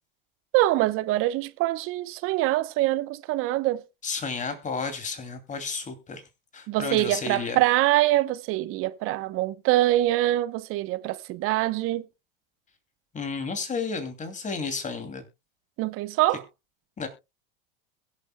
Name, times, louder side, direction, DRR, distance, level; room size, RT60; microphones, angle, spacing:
voice 1, 0.5-3.8 6.7-12.1 15.8-16.4, right 16 dB, 50° right, 0.8 m, -24 dB
voice 2, 4.0-6.2 6.5-7.6 13.1-15.3 17.0-17.1, left 4 dB, 25° left, 2.6 m, -32 dB
21.5 x 7.4 x 2.2 m
hypercardioid pair, 85°, 29 cm